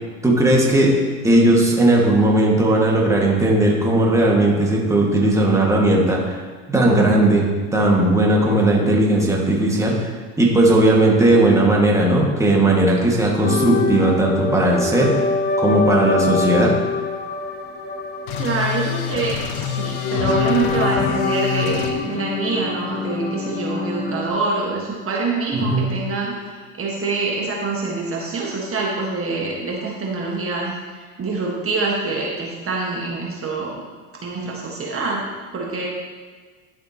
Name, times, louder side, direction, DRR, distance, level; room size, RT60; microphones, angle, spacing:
voice 1, 0.2-1.0 1.2-6.4 6.7-7.5 7.7-10.1 10.4-15.2 15.6-16.8 25.5-25.9, right 1 dB, 5° right, -2 dB, 1.9 m, -17 dB
sound 1, 13.4-24.3, left 4 dB, 25° left, 1.0 m, -25 dB
sound 2, 18.3-21.9, left 8 dB, 75° left, 1.0 m, -26 dB
voice 2, 18.4-33.8 34.2-35.9, right 3 dB, 30° right, -2 dB, 1.6 m, -25 dB
11.5 x 6.9 x 2.9 m, 1.5 s
hypercardioid pair, 80°, 43 cm